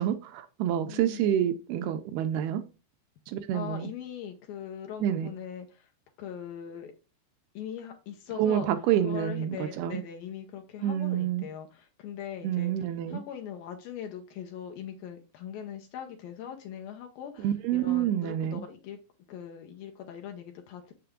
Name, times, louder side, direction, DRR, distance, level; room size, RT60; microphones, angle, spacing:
voice 1, 0.0-2.6 3.3-3.9 5.0-5.3 8.4-10.0 10.8-11.5 12.4-13.2 17.4-18.6, right 11 dB, 80° right, 2.4 m, -28 dB
voice 2, 0.9-1.5 3.5-5.9 6.2-6.9 7.5-8.7 9.0-19.0 19.3-20.9, left 9 dB, 75° left, 2.2 m, -41 dB
7.5 x 6.8 x 3.6 m
omnidirectional pair, 4.9 m